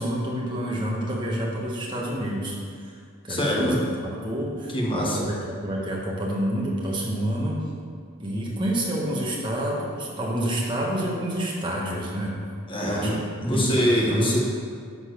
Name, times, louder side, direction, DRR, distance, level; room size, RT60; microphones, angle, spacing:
voice 1, 0.0-2.9 3.2-3.8 4.2-7.6 8.2-12.3 12.9-13.1 13.5-14.3, right 1 dB, 20° right, -3 dB, 1.5 m, -28 dB
voice 2, 3.3-3.8 4.7-5.3 12.7-14.4, equal, 25° left, -3 dB, 1.3 m, -24 dB
11.0 x 4.2 x 6.4 m, 2.1 s
head